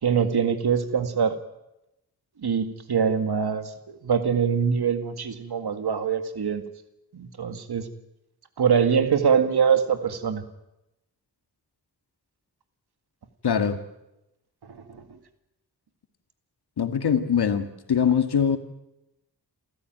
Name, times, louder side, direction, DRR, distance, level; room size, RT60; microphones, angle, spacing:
voice 1, 0.0-1.3 2.4-6.6 7.1-7.9 8.6-10.4 14.6-15.2, right 7 dB, 80° right, 9 dB, 2.0 m, -24 dB
voice 2, 13.4-13.8 16.8-18.6, left 7 dB, 85° left, 8 dB, 2.0 m, -22 dB
28.0 x 14.5 x 9.2 m, 0.91 s
wide cardioid pair, 70°, 38 cm